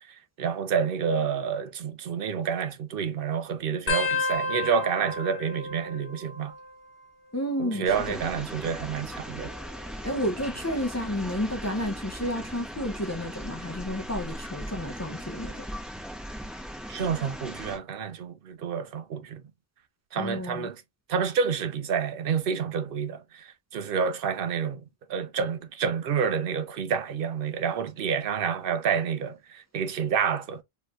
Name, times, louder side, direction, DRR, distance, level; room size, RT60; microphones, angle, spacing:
voice 1, 0.1-6.5 7.6-9.5 16.9-19.4 20.1-20.8 21.1-24.8 25.1-30.6, right 6 dB, 60° right, 0.6 m, -29 dB
sound 1, 3.9-7.1 7.3-7.9 8.9-10.4 11.0-11.4 12.6-12.9 14.4-14.5, left 3 dB, 45° left, 1.1 m, -34 dB
voice 2, 7.3-8.2 10.0-15.7 20.1-20.7, left 1 dB, 25° left, 0.3 m, -31 dB
sound 2, 7.9-17.8, equal, ahead, 1.0 m, -39 dB
4.2 x 3.1 x 2.4 m
omnidirectional pair, 1.3 m